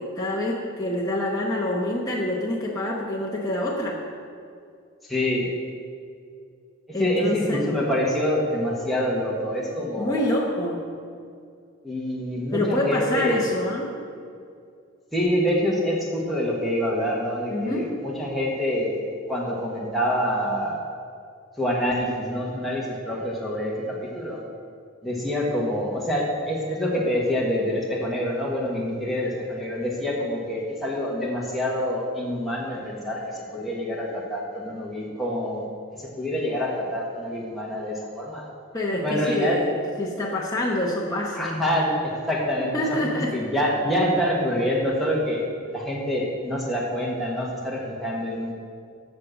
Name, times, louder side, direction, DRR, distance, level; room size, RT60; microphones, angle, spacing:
voice 1, 0.0-4.0 6.9-7.6 9.8-10.8 12.5-13.9 17.5-17.9 38.7-39.7 40.0-41.6 42.7-43.4, left 1 dB, 20° left, -4 dB, 0.9 m, -26 dB
voice 2, 5.1-5.5 7.0-10.2 11.8-13.4 15.1-19.0 19.3-20.8 21.6-24.4 25.0-35.6 36.0-38.4 39.0-39.6 41.3-45.4 45.7-48.5, equal, ahead, -5 dB, 1.3 m, -26 dB
7.4 x 6.6 x 7.4 m, 2.3 s
head